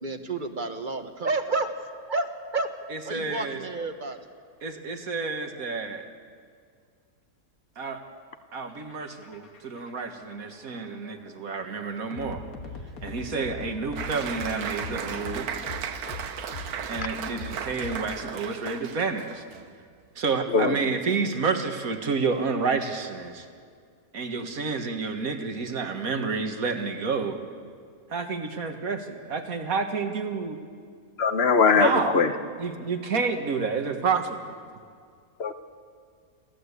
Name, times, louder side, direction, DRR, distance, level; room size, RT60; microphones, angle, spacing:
voice 1, 0.0-1.7 2.1-2.7 3.0-4.2, right 3 dB, 35° right, 7 dB, 1.3 m, -30 dB
voice 2, 2.9-3.6 4.6-6.1 7.8-8.0 8.5-12.4 13.0-15.5 16.9-19.4 20.2-23.5 24.1-27.4 28.1-30.6 31.8-32.2 32.6-34.5, right 4 dB, 70° right, 6 dB, 2.1 m, -29 dB
sound 1, 8.7-18.5, left 3 dB, 75° left, 2.1 m, -41 dB
Applause, 14.0-19.7, right 7 dB, 85° right, 1.5 m, -36 dB
voice 3, 31.2-32.3 35.4-35.5, left 5 dB, 45° left, 9 dB, 1.2 m, -20 dB
27.5 x 14.5 x 8.3 m, 2.1 s
omnidirectional pair, 1.5 m